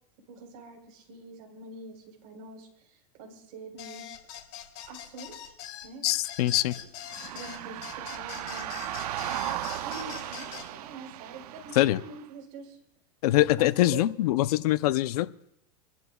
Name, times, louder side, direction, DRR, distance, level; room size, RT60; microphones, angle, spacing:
voice 1, 0.3-4.1 4.9-5.5 5.8-6.1 6.4-6.9 7.3-9.0 9.8-12.8 13.6-14.0, right 3 dB, 55° right, 1 dB, 4.1 m, -45 dB
sound 1, 3.8-10.7, left 10 dB, 55° left, 2.8 m, -43 dB
voice 2, 6.0-6.7 11.8-12.0 13.2-15.3, left 16 dB, 75° left, 14 dB, 0.6 m, -23 dB
sound 2, 7.1-12.2, right 13 dB, 80° right, 0.6 m, -36 dB
27.0 x 12.0 x 2.3 m, 0.77 s
supercardioid pair, 135°, 20 cm